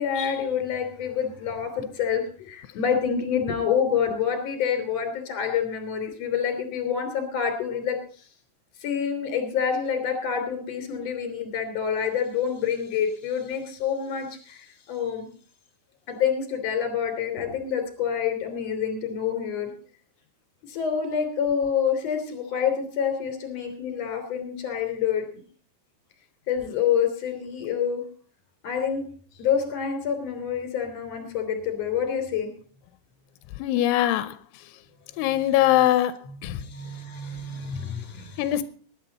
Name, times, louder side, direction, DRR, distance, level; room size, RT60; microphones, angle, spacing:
voice 1, 0.0-8.0 8.8-15.3 16.1-19.7 20.6-25.3 26.5-28.0 28.6-29.0 29.4-32.5 36.5-38.5, left 7 dB, 40° left, 3.8 m, -27 dB
voice 2, 33.6-34.4 35.2-36.1 36.4-36.6 38.4-38.6, left 13 dB, 90° left, 3.2 m, -21 dB
19.0 x 9.9 x 4.1 m
omnidirectional pair, 5.3 m